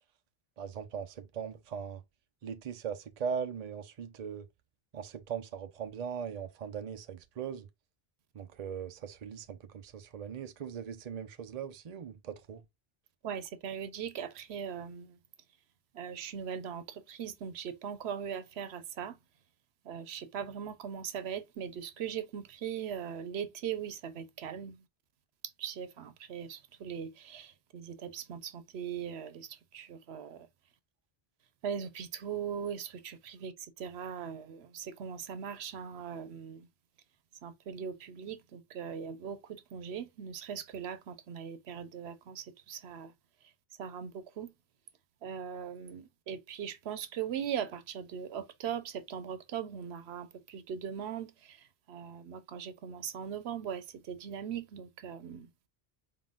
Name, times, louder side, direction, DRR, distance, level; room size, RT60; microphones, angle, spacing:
voice 1, 0.6-2.0 2.4-4.5 4.9-7.7 8.3-12.6, right 7 dB, 45° right, 0.6 m, -39 dB
voice 2, 13.2-15.2 15.9-19.2 19.8-24.8 25.6-30.5 31.6-36.7 37.4-43.1 43.8-44.5 45.2-55.5, right 8 dB, 85° right, 0.9 m, -40 dB
4.3 x 3.8 x 2.4 m
omnidirectional pair, 1.0 m